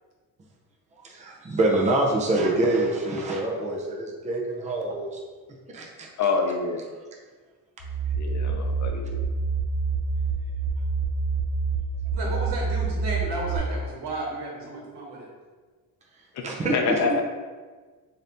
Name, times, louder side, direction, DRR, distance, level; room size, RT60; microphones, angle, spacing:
voice 1, 1.0-5.2 5.7-6.1 16.4-17.0, right 2 dB, 20° right, -1 dB, 0.5 m, -25 dB
voice 2, 6.2-6.8 8.2-9.2 16.3-16.4 16.7-17.2, left 4 dB, 50° left, 3 dB, 0.5 m, -26 dB
sound 1, 7.8-13.6, right 4 dB, 75° left, 0.8 m, -27 dB
voice 3, 12.1-15.3, right 2 dB, 80° right, -2 dB, 1.1 m, -33 dB
3.8 x 2.7 x 3.4 m, 1.4 s
cardioid pair, 145°, 39 cm